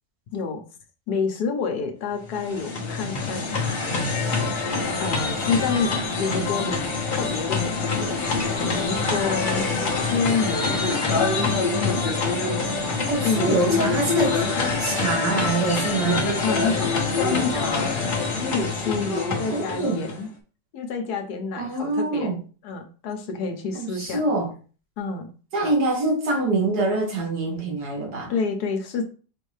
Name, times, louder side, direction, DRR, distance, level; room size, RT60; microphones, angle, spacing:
voice 1, 0.3-0.6 1.1-3.6 5.0-6.8 7.1-9.7 9.9-11.1 11.8-12.1 13.2-13.9 16.4-17.9 18.4-20.3 20.7-22.3 22.6-24.2 25.0-25.3 28.3-29.1, left 5 dB, 70° left, 1.3 m, -28 dB
sound 1, 2.2-20.3, left 4 dB, 40° left, 0.8 m, -25 dB
voice 2, 13.1-14.4 14.8-16.3 19.5-20.0 21.6-22.4 23.7-24.5 25.5-28.3, right 3 dB, 70° right, 1.7 m, -25 dB
5.0 x 2.7 x 3.2 m
omnidirectional pair, 1.8 m